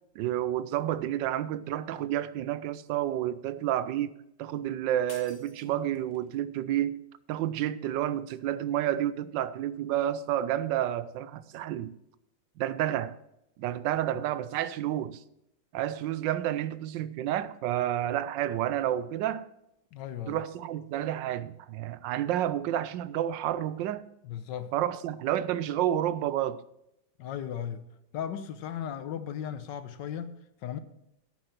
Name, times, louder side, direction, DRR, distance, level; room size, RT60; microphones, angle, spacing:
voice 1, 0.2-7.0 7.3-11.9 12.6-13.2 13.6-15.2 15.7-19.5 20.3-24.0 24.7-26.6, right 12 dB, 85° right, 1.3 m, -30 dB
sound 1, 5.1-6.3, left 3 dB, 25° left, 1.3 m, -51 dB
voice 2, 19.9-20.4 24.2-24.7 27.2-27.8 28.1-30.8, left 9 dB, 75° left, 1.4 m, -36 dB
11.0 x 9.0 x 4.4 m
omnidirectional pair, 2.0 m